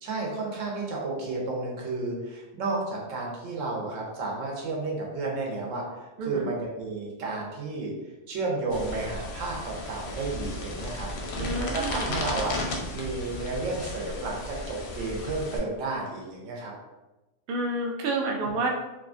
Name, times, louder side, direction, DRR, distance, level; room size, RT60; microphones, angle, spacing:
voice 1, 0.0-5.8 6.2-7.9 8.3-11.1 11.4-16.7, right 3 dB, 85° right, -2 dB, 1.1 m, -32 dB
voice 2, 6.2-6.5 11.4-12.2 17.5-18.7, right 2 dB, 60° right, 0 dB, 0.6 m, -29 dB
sound 1, 8.7-15.6, left 1 dB, 60° left, 0.6 m, -35 dB
2.7 x 2.3 x 2.4 m, 1.1 s
omnidirectional pair, 1.3 m